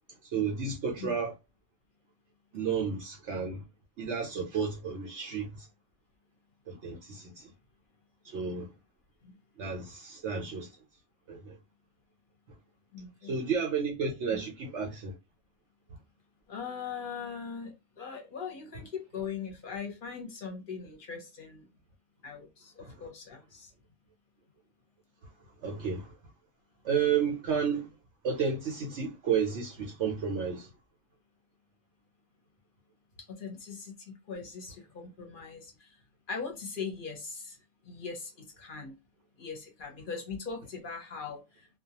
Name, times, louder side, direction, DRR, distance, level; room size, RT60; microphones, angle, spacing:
voice 1, 0.2-1.3 2.5-3.6 4.0-5.7 6.7-7.5 8.2-8.7 9.6-10.8 11.3-11.6 13.2-15.1 22.8-23.1 25.6-26.1 26.8-27.9 28.2-30.7, right 6 dB, 70° right, 0.9 m, -32 dB
voice 2, 12.9-13.4 14.3-14.4 16.5-21.7 22.2-23.7 33.2-36.0 36.3-37.6 37.8-38.9 39.4-41.8, left 5 dB, 50° left, 0.8 m, -40 dB
2.3 x 2.2 x 2.8 m
omnidirectional pair, 1.3 m